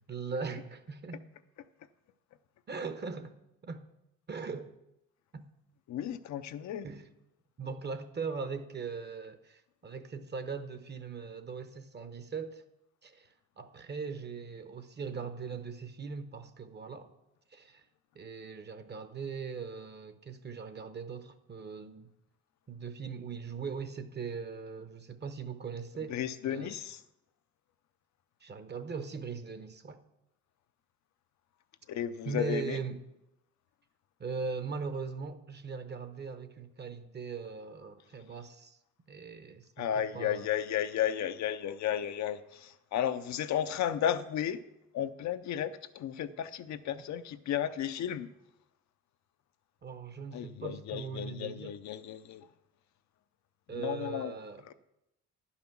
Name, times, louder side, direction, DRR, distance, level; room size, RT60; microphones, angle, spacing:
voice 1, 0.1-1.3 2.7-3.4 3.6-3.9 4.3-4.7 5.3-5.5 6.8-7.1 7.6-12.6 13.0-17.1 17.5-17.9 18.1-22.1 22.7-26.7 28.4-30.0 32.2-33.0 34.2-38.8 39.1-40.4 49.8-51.8 53.7-54.7, right 5 dB, 35° right, 0.9 m, -40 dB
voice 2, 5.9-6.9 26.1-27.0 31.9-32.8 39.8-44.6 44.9-48.3 50.3-52.5 53.8-54.3 54.7-54.8, left 10 dB, 70° left, 0.6 m, -33 dB
10.5 x 5.7 x 5.9 m
cardioid pair, 90°, 30 cm